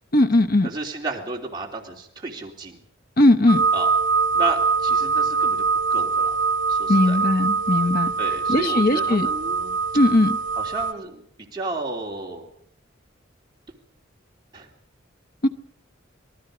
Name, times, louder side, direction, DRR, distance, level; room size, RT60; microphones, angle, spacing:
voice 1, 0.1-0.7 3.2-3.6 6.9-8.1 8.5-9.3 9.9-10.4 15.4-15.5, left 1 dB, 50° left, 10 dB, 1.0 m, -18 dB
voice 2, 0.6-2.8 3.7-3.9 4.3-5.6 5.9-6.4 6.7-7.2 8.2-9.8 10.6-11.2 11.5-12.4 14.5-14.7, right 3 dB, 20° right, -1 dB, 3.2 m, -32 dB
sound 1, 3.5-10.9, right 5 dB, 65° right, 1.9 m, -23 dB
27.0 x 19.0 x 5.0 m, 0.64 s
head